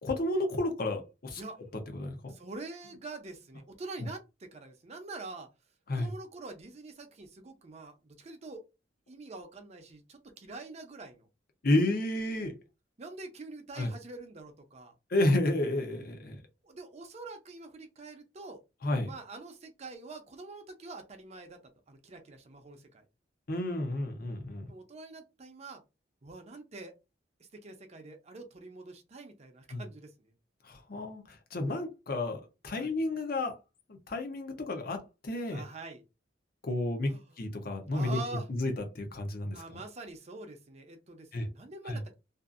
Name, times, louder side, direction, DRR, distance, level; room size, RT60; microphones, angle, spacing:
voice 1, 0.0-1.4 1.9-2.3 5.9-6.1 11.6-12.5 13.7-13.9 15.1-16.4 18.8-19.1 23.5-24.7 29.7-29.8 30.6-33.6 33.9-35.6 36.6-37.1 37.4-38.2 38.5-39.8 41.3-41.5 41.9-42.0, left 1 dB, 55° left, 0.7 m, -31 dB
voice 2, 2.3-5.5 5.9-8.6 9.1-11.3 13.0-14.9 16.6-18.6 19.0-21.6 21.9-23.0 24.7-25.8 26.2-26.9 27.4-30.3 32.7-33.0 35.5-36.0 37.1-37.3 37.9-38.5 39.5-42.1, right 3 dB, 35° right, 0.5 m, -45 dB
2.6 x 2.5 x 2.4 m
head